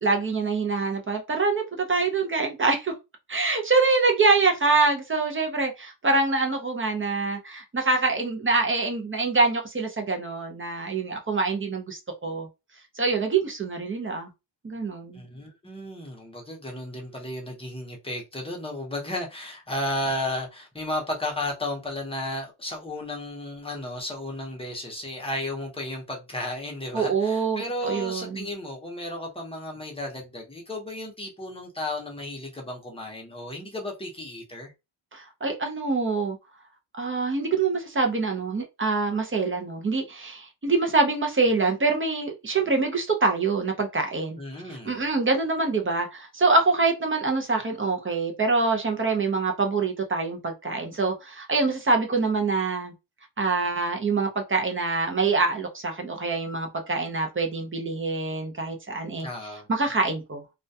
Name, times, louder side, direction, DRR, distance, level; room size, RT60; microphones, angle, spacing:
voice 1, 0.0-2.9 3.3-12.5 13.0-14.3 14.6-15.2 26.9-28.5 35.1-36.4 37.0-44.4 44.6-52.9 53.4-59.3 59.7-60.4, right 3 dB, 25° right, 0.4 m, -25 dB
voice 2, 15.1-34.7 44.4-45.1 59.2-59.7, left 1 dB, 10° left, 0.7 m, -33 dB
2.2 x 2.2 x 2.6 m
wide cardioid pair, 155°, 49 cm